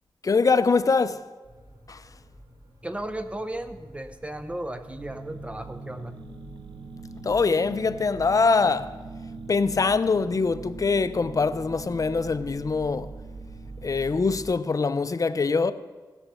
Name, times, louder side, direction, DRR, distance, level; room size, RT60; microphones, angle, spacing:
voice 1, 0.2-1.2 1.9-2.1 7.2-8.9 9.5-13.1 13.8-15.7, left 4 dB, 45° left, 0.6 m, -23 dB
sound 1, 1.4-14.4, equal, 55° right, 4.3 m, -51 dB
voice 2, 2.8-6.2, right 1 dB, 15° right, 0.7 m, -35 dB
sound 2, 5.0-14.4, right 3 dB, 85° right, 0.9 m, -41 dB
16.5 x 6.6 x 6.2 m
wide cardioid pair, 80°, 8 cm